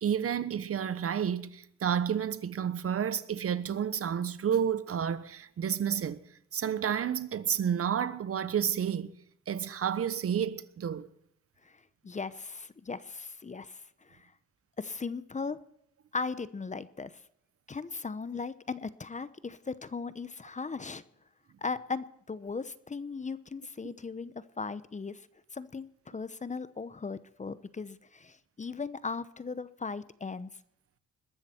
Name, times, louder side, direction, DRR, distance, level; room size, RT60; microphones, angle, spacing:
voice 1, 0.0-6.2 6.5-9.1 9.5-11.1, right 8 dB, 50° right, 1.1 m, -30 dB
voice 2, 11.6-14.3 14.8-15.6 16.1-17.1 17.7-21.0 21.6-25.2 25.5-30.5, left 4 dB, 25° left, 0.9 m, -38 dB
21.0 x 13.5 x 4.5 m
cardioid pair, 90°, 30 cm